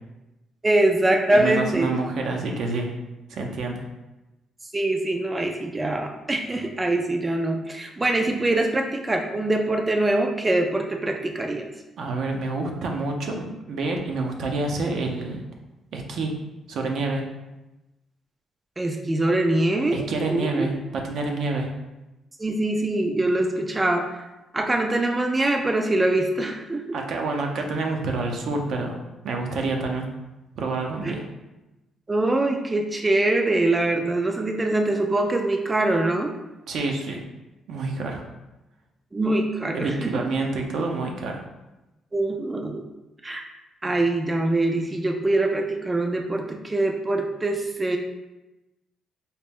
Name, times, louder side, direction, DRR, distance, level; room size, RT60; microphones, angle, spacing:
voice 1, 0.6-1.9 4.7-11.7 18.8-20.7 22.4-24.1 24.5-27.0 31.0-31.1 32.1-36.3 39.1-40.3 42.1-42.8 43.2-43.4 43.8-48.0, right 2 dB, 20° right, 4 dB, 0.3 m, -23 dB
voice 2, 1.3-2.9 3.3-3.8 12.0-15.4 15.9-16.3 16.7-17.2 19.9-21.7 26.9-29.0 29.2-30.1 30.6-31.2 36.7-37.2 37.7-38.2 39.7-41.4, right 3 dB, 70° right, 2 dB, 0.6 m, -28 dB
4.1 x 2.0 x 3.5 m, 1.0 s
cardioid pair, 90°, 0 cm